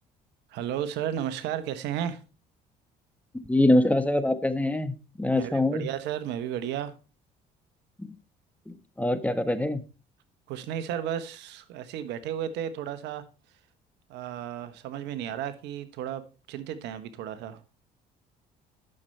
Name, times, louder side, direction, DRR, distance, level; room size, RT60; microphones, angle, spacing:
voice 1, 0.5-2.2 5.3-6.9 10.5-13.2 14.1-17.6, right 10 dB, 75° right, 1.2 m, -33 dB
voice 2, 3.5-5.8 9.0-9.8, left 1 dB, 10° left, 1.3 m, -24 dB
11.0 x 6.7 x 4.4 m
supercardioid pair, 70°, 18 cm